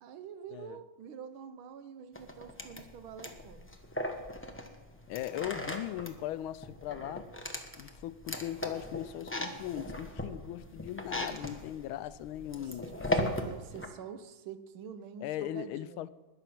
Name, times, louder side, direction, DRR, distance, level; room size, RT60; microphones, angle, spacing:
voice 1, 0.0-3.7 12.5-16.1, right 7 dB, 85° right, 1.7 m, -46 dB
sound 1, 2.2-13.9, left 1 dB, 10° left, 0.6 m, -38 dB
voice 2, 5.1-7.3 7.8-13.2 15.2-16.1, left 12 dB, 85° left, 1.4 m, -39 dB
20.5 x 6.9 x 5.9 m
omnidirectional pair, 2.2 m